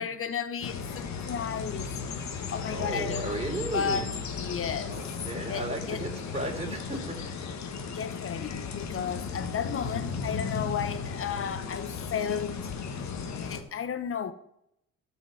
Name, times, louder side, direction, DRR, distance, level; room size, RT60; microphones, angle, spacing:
voice 1, 0.0-2.2 2.5-5.0 5.5-6.0 7.9-12.6 13.3-14.3, left 7 dB, 45° left, 1.0 m, -34 dB
sound 1, 0.6-13.6, left 5 dB, 65° left, 1.4 m, -35 dB
voice 2, 2.7-4.1 4.9-7.2, right 2 dB, 20° right, 3.5 m, -35 dB
12.5 x 5.2 x 7.7 m
cardioid pair, 90°, 30 cm